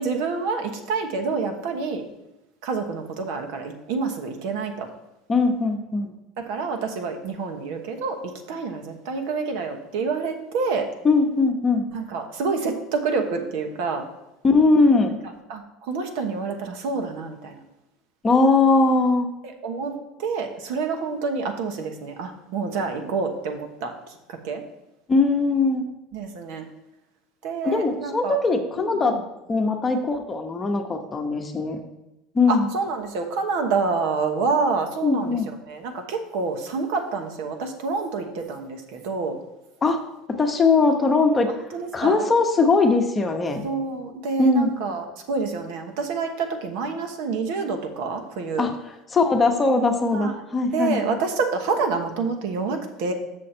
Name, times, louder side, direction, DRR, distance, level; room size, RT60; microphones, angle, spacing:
voice 1, 0.0-2.0 2.6-4.9 6.4-10.9 11.9-14.0 15.5-17.6 19.4-24.6 26.1-26.7 27.4-28.4 28.8-29.2 32.5-39.4 41.7-42.3 43.6-48.7 50.1-50.3 50.7-53.1, right 4 dB, 70° right, 5 dB, 1.1 m, -28 dB
voice 2, 5.3-6.1 11.0-11.9 14.4-15.2 18.2-19.3 25.1-25.8 27.6-29.1 29.5-31.8 32.3-32.7 35.0-35.5 39.8-40.0 40.4-41.5 41.9-43.6 44.4-44.7 48.6-48.7 49.1-51.2, left 3 dB, 20° left, 4 dB, 0.9 m, -20 dB
6.4 x 6.4 x 4.4 m, 0.95 s
supercardioid pair, 130°, 0 cm